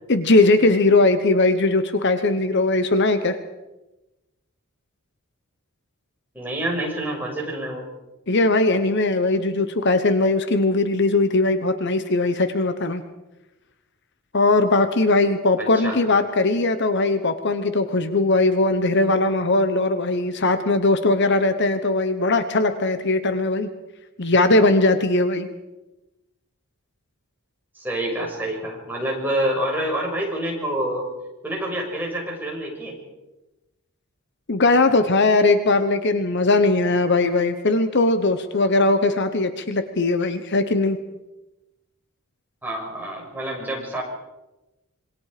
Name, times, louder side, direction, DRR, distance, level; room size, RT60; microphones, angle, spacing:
voice 1, 0.1-3.4 8.3-13.0 14.3-23.7 24.2-25.5 34.5-41.0, left 2 dB, 55° left, 9 dB, 1.2 m, -19 dB
voice 2, 6.3-7.8 15.6-16.0 27.7-31.1 31.4-33.0 42.6-44.0, right 1 dB, 10° right, -2 dB, 6.5 m, -27 dB
26.5 x 23.5 x 5.1 m, 1.0 s
head